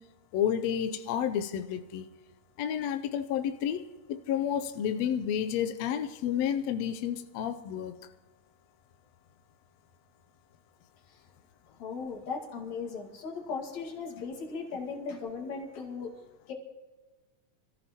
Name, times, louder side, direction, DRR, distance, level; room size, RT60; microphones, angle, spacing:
voice 1, 0.3-2.1 2.6-7.9, left 9 dB, 85° left, 1.5 m, -31 dB
voice 2, 11.8-16.5, left 5 dB, 60° left, 3.1 m, -38 dB
26.5 x 14.5 x 3.0 m
omnidirectional pair, 3.8 m